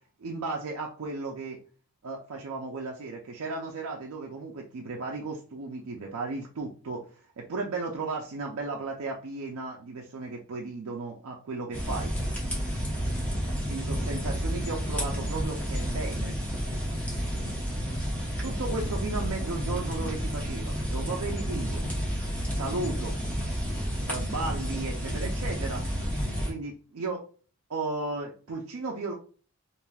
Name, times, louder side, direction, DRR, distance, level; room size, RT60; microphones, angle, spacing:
voice 1, 0.2-1.6 2.0-7.1 7.4-12.1 13.7-16.4 18.4-21.8 22.5-23.2 24.1-25.8 26.5-27.2 27.7-29.1, right 3 dB, 70° right, -1 dB, 0.4 m, -35 dB
sound 1, 11.7-26.5, equal, 5° left, 0.8 m, -31 dB
3.2 x 2.5 x 2.2 m, 0.40 s
head